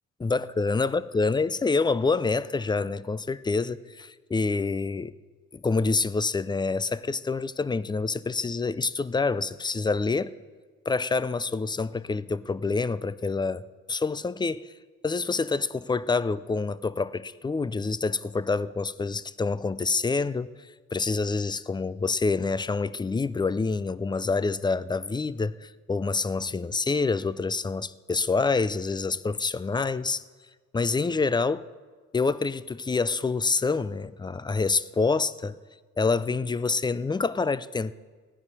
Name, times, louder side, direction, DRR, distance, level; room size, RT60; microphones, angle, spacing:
voice 1, 0.2-5.1 5.5-10.3 10.9-13.6 13.9-14.7 15.0-20.5 20.9-30.2 30.7-31.6 32.1-35.6 36.0-37.9, left 4 dB, 15° left, 17 dB, 0.4 m, -27 dB
15.5 x 9.8 x 5.3 m, 1.4 s
cardioid pair, 90°, 30 cm